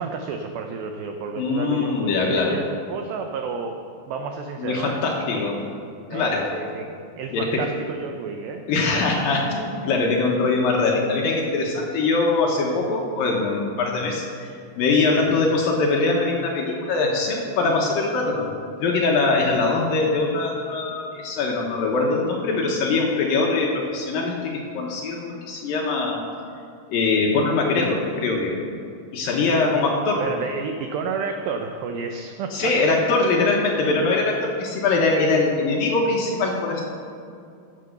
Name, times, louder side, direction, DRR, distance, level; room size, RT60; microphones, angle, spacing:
voice 1, 0.0-3.8 4.1-5.5 6.1-6.9 7.2-9.0 15.2-15.3 29.5-29.9 30.2-32.7, right 5 dB, 90° right, 5 dB, 2.1 m, -31 dB
voice 2, 1.4-2.6 4.6-5.5 6.1-6.5 7.3-7.6 8.7-18.5 18.8-26.2 26.9-28.6 29.1-30.2 32.5-36.8, left 3 dB, 70° left, -1 dB, 2.4 m, -22 dB
14.0 x 6.8 x 6.6 m, 2.4 s
omnidirectional pair, 5.0 m